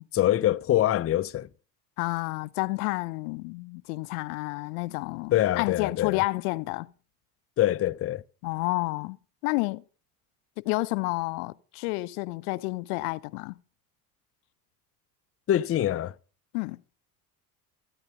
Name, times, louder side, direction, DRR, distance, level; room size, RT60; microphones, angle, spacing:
voice 1, 0.1-1.5 5.3-6.2 7.6-8.2 15.5-16.1, left 13 dB, 30° left, 0.6 m, -24 dB
voice 2, 2.0-6.9 8.4-9.2 9.4-9.8 10.6-13.6 16.5-16.8, left 24 dB, 65° left, 0.7 m, -30 dB
15.0 x 10.0 x 6.5 m
hypercardioid pair, 70°, 47 cm